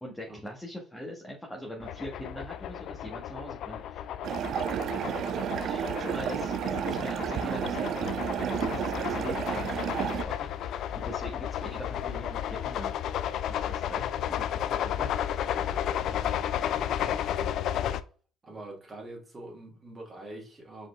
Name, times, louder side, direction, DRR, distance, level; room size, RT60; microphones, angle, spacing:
voice 1, 0.0-4.0 4.9-12.9 13.5-15.1 16.1-16.3, equal, 10° left, 1.3 m, -42 dB
sound 1, 1.8-18.0, left 10 dB, 65° left, 0.4 m, -33 dB
sound 2, 4.2-10.2, right 9 dB, 55° right, 0.4 m, -31 dB
voice 2, 18.4-20.9, right 2 dB, 30° right, 2.1 m, -44 dB
4.8 x 4.0 x 2.3 m
supercardioid pair, 70°, 0 cm